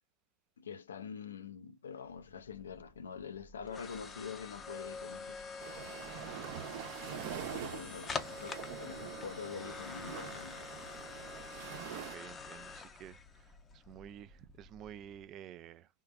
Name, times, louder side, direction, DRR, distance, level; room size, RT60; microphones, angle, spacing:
voice 1, 0.6-5.5 7.5-10.7, left 6 dB, 75° left, 0.4 m, -45 dB
sound 1, 2.2-15.2, left 4 dB, 20° left, 0.6 m, -46 dB
sound 2, 5.6-12.2, right 8 dB, 55° right, 0.8 m, -45 dB
voice 2, 11.6-15.9, right 10 dB, 40° right, 0.3 m, -51 dB
3.6 x 2.3 x 2.2 m
figure-of-eight pair, 90°, 0 cm